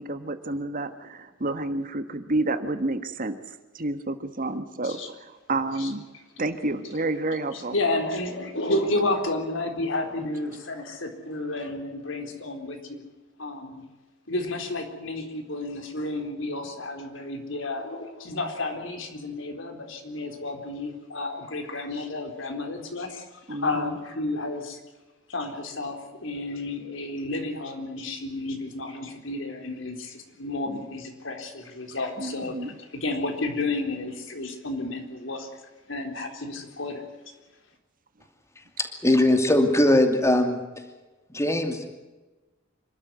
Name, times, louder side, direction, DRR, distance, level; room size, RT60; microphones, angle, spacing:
voice 1, 0.0-6.0 6.4-7.7 23.5-24.0 30.7-30.8 32.2-32.8, right 2 dB, 45° right, 10 dB, 1.5 m, -30 dB
voice 2, 7.5-13.0 13.4-13.8 14.3-24.8 25.3-32.5 32.9-35.5 35.9-37.1, left 2 dB, 70° left, 5 dB, 4.1 m, -31 dB
voice 3, 38.8-40.6 41.3-41.9, left 1 dB, 15° left, 6 dB, 2.6 m, -20 dB
27.0 x 13.0 x 9.5 m, 1.2 s
head